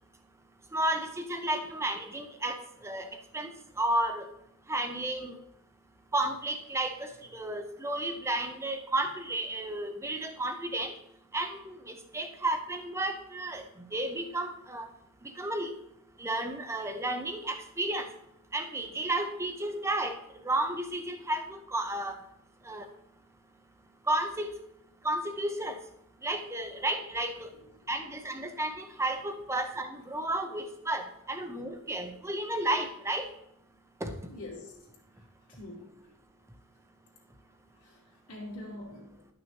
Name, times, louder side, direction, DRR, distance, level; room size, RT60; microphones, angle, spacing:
voice 1, 0.7-4.3 4.7-5.4 6.1-11.0 11.3-15.0 15.2-15.7 16.2-18.1 18.5-22.2 22.6-22.9 24.0-24.6 25.0-25.8 26.2-27.6 27.9-33.3 34.0-34.3, right 1 dB, 15° right, 5 dB, 0.8 m, -33 dB
voice 2, 34.3-34.8 35.5-36.0 37.8-38.0 38.3-39.2, left 1 dB, 75° left, -3 dB, 2.8 m, -44 dB
11.5 x 6.3 x 3.0 m, 0.77 s
head